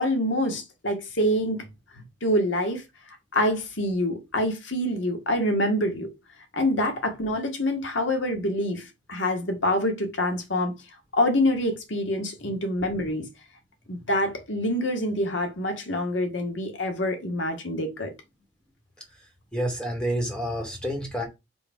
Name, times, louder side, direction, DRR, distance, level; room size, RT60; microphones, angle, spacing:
voice 1, 0.0-1.6 2.2-6.1 6.5-10.7 11.1-13.3 13.9-18.1, left 1 dB, 80° left, 1.9 m, -26 dB
voice 2, 19.5-21.3, equal, 5° left, 2.7 m, -28 dB
5.6 x 5.2 x 5.8 m
head